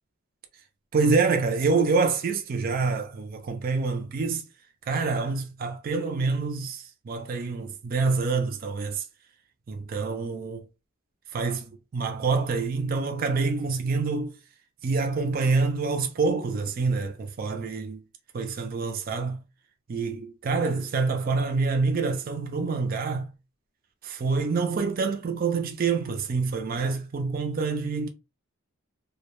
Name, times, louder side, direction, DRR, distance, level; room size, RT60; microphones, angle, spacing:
voice 1, 0.9-4.4 4.9-9.0 9.7-10.6 11.3-14.3 14.8-18.1 18.3-19.4 19.9-23.3 24.0-28.1, right 4 dB, 45° right, 0.4 m, -26 dB
2.1 x 2.1 x 3.0 m
head